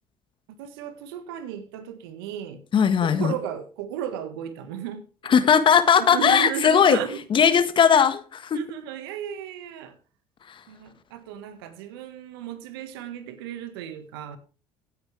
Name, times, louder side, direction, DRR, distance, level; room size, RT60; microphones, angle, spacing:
voice 1, 0.5-2.6 3.0-5.3 5.8-7.8 8.5-10.0 10.7-14.4, right 9 dB, 80° right, 1.6 m, -35 dB
voice 2, 2.7-3.3 5.3-7.0 7.3-8.6, left 7 dB, 45° left, 1.5 m, -18 dB
16.0 x 8.8 x 3.3 m
hypercardioid pair, 65°, 12 cm